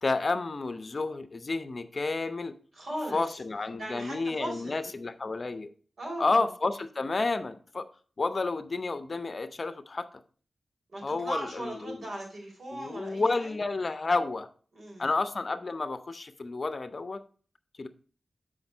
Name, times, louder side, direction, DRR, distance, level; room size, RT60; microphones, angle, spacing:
voice 1, 0.0-2.6 3.1-5.7 6.2-7.9 8.2-10.2 11.0-12.1 12.7-14.5 15.0-17.2 17.8-17.9, left 3 dB, 45° left, 11 dB, 0.6 m, -30 dB
voice 2, 2.7-3.2 3.8-4.7 6.0-6.4 10.9-13.5 14.7-15.1, right 1 dB, 65° right, -2 dB, 3.7 m, -38 dB
7.1 x 5.1 x 5.3 m, 0.41 s
wide cardioid pair, 95°, 0 cm